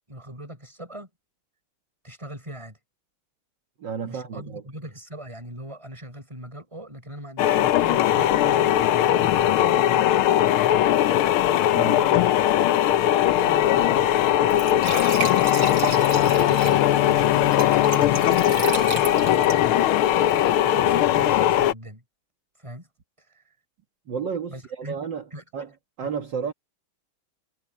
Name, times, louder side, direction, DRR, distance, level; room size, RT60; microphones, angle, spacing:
voice 1, 0.1-1.1 2.0-2.8 4.0-10.1 11.7-14.1 14.8-19.6 20.6-22.0 22.6-22.9 23.3-23.5 24.5-25.4, right 1 dB, 15° right, 6.1 m, -41 dB
voice 2, 3.8-4.6 11.7-12.1 24.1-25.7 26.0-26.5, right 6 dB, 60° right, 2.2 m, -32 dB
sound 1, 7.4-21.7, left 12 dB, 90° left, 1.6 m, -20 dB
Glass / Trickle dribble / Fill (with liquid), 13.2-20.5, right 5 dB, 90° right, 4.2 m, -35 dB
Bowed string instrument, 15.1-18.8, left 16 dB, 75° left, 0.9 m, -28 dB
omnidirectional pair, 2.3 m